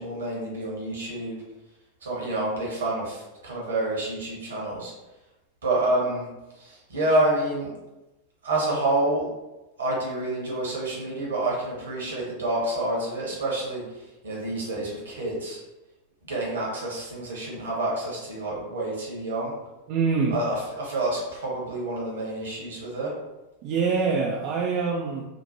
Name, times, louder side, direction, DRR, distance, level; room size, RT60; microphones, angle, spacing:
voice 1, 0.0-1.3 2.0-4.9 5.6-6.2 6.5-7.7 8.4-9.2 9.8-15.6 16.3-19.5 20.3-23.1, right 2 dB, 65° right, -4 dB, 1.0 m, -28 dB
voice 2, 19.9-20.4 23.6-25.2, right 5 dB, 40° right, -2 dB, 0.3 m, -24 dB
3.0 x 2.1 x 2.7 m, 1.0 s
figure-of-eight pair, 90°, 0 cm